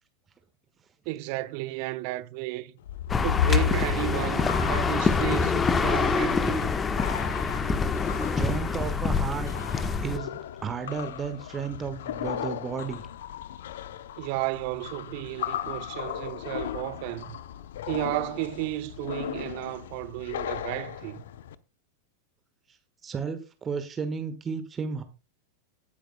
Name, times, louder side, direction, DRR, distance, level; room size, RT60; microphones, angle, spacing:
voice 1, 1.1-2.7 3.2-6.7 14.2-17.4 17.9-21.2, right 19 dB, 45° right, 0.9 m, -33 dB
sound 1, 2.8-21.5, left 10 dB, 60° left, 0.7 m, -35 dB
sound 2, 3.1-10.2, left 5 dB, 15° left, 1.1 m, -26 dB
voice 2, 8.4-9.5 10.0-13.0 23.0-25.0, right 6 dB, 20° right, 1.4 m, -33 dB
19.0 x 10.0 x 2.2 m
figure-of-eight pair, 90°, 0 cm